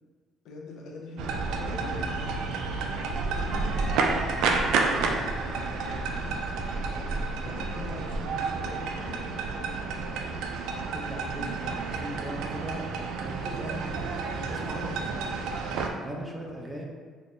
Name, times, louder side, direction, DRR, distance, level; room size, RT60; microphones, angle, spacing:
voice 1, 0.4-2.3 3.4-4.9 7.4-9.4 16.5-16.6, left 3 dB, 80° left, -2 dB, 0.6 m, -42 dB
sound 1, 1.2-15.9, right 4 dB, 85° right, 0.3 m, -30 dB
sound 2, 3.0-12.3, equal, 15° left, 1.0 m, -47 dB
voice 2, 4.9-7.7 10.9-14.1 14.3-15.2 15.7-16.9, right 1 dB, 20° right, -1 dB, 0.6 m, -40 dB
4.1 x 2.1 x 3.1 m, 1.5 s
cardioid pair, 105°, 0 cm